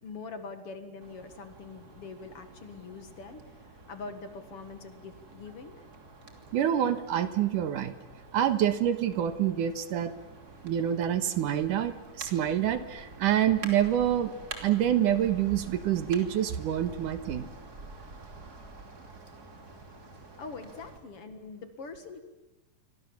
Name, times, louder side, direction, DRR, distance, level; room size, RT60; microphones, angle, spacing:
voice 1, 0.0-5.9 19.6-22.2, left 4 dB, 50° left, 9 dB, 2.4 m, -44 dB
sound 1, 1.0-21.0, right 2 dB, 30° right, 3.2 m, -48 dB
voice 2, 6.5-7.9 8.3-10.1 10.6-14.3 14.6-17.5, right 10 dB, 80° right, 11 dB, 2.9 m, -27 dB
28.5 x 24.5 x 7.3 m, 1.1 s
omnidirectional pair, 3.7 m